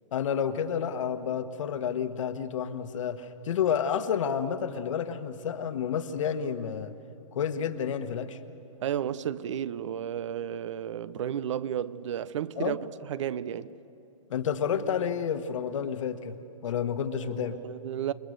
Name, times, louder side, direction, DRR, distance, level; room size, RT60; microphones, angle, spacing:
voice 1, 0.1-6.9 7.3-8.4 12.6-12.8 14.3-16.4 16.6-17.6, left 8 dB, 65° left, 1.5 m, -30 dB
voice 2, 8.8-13.7 17.2-18.1, right 10 dB, 65° right, 0.8 m, -33 dB
28.5 x 20.5 x 6.7 m
hypercardioid pair, 130°, 17 cm